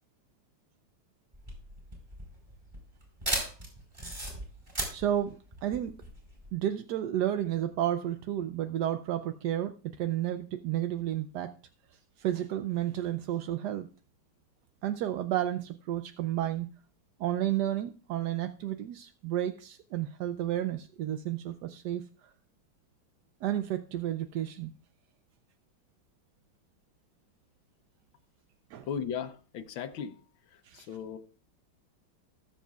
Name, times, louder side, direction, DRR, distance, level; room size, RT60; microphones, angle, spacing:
sound 1, 1.3-6.5, right 1 dB, 20° right, 4.4 m, -36 dB
voice 1, 4.9-6.0 6.5-11.5 12.2-13.9 14.8-16.7 17.2-22.3 23.4-24.7 28.7-28.9 30.6-31.0, right 12 dB, 70° right, 1.0 m, -32 dB
voice 2, 28.9-30.2 30.7-31.2, left 7 dB, 80° left, 1.6 m, -36 dB
19.0 x 7.3 x 2.4 m
omnidirectional pair, 2.2 m